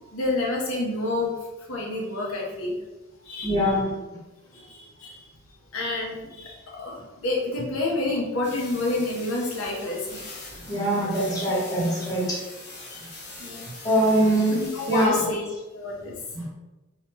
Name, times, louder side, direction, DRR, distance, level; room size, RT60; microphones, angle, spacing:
voice 1, 0.1-1.3 1.7-2.7 3.3-3.7 4.5-5.1 5.7-10.2 12.9-13.0 13.4-13.7 14.6-15.5 15.7-16.2, left 2 dB, 80° left, -2 dB, 1.0 m, -29 dB
voice 2, 3.4-3.9 10.7-12.4 13.8-14.6 14.9-15.1 16.3-16.4, right 1 dB, 15° left, -5 dB, 1.2 m, -22 dB
sound 1, 8.4-15.1, left 2 dB, 50° left, 1.3 m, -42 dB
4.1 x 4.0 x 3.0 m, 1.1 s
head